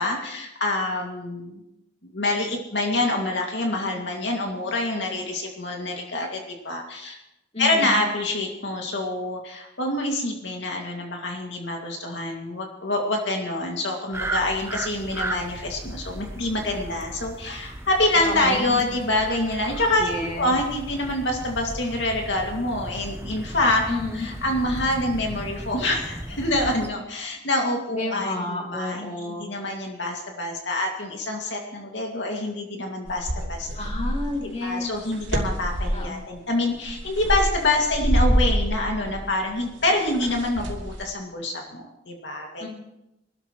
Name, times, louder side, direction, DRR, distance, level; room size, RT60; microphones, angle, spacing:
voice 1, 0.0-1.6 2.0-7.2 7.6-23.8 24.1-33.7 34.6-42.6, left 2 dB, 80° left, 1 dB, 2.3 m, -26 dB
voice 2, 7.5-8.0 18.1-19.0 20.0-20.5 23.9-24.3 27.9-29.4 33.7-34.9 35.9-36.2 42.6-42.7, left 2 dB, 35° left, -1 dB, 2.9 m, -31 dB
sound 1, 14.1-26.9, right 2 dB, 15° right, 0.7 m, -36 dB
sound 2, 33.1-34.4 34.9-36.1 36.7-41.1, equal, 90° right, 3.0 m, -26 dB
24.5 x 12.5 x 3.1 m, 0.87 s
head